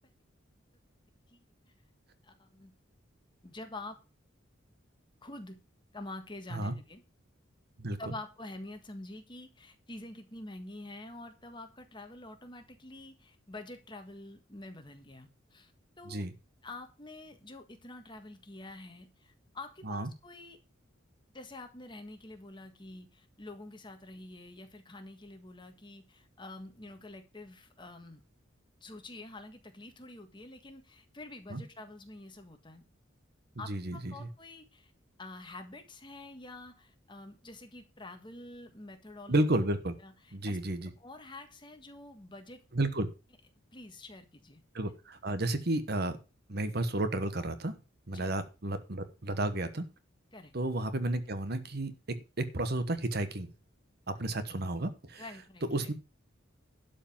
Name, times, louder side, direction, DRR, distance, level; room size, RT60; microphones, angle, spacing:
voice 1, 2.2-2.7 3.4-4.0 5.2-5.6 5.9-7.0 8.0-15.7 16.0-16.3 16.6-20.6 21.3-28.2 28.8-32.8 33.6-34.9 35.2-39.5 40.0-40.6 41.0-42.6 43.7-44.9 48.1-48.4 50.3-50.5 55.2-55.9, left 2 dB, 25° left, 6 dB, 1.6 m, -47 dB
voice 2, 7.8-8.1 16.1-16.3 19.8-20.1 31.5-31.6 33.7-34.3 39.3-39.9 40.3-40.9 42.7-43.1 44.7-46.2 46.5-47.7 48.1-49.8 50.5-53.5 54.1-55.2 55.7-55.9, right 2 dB, 55° right, 11 dB, 1.1 m, -32 dB
11.5 x 5.1 x 7.1 m, 0.31 s
head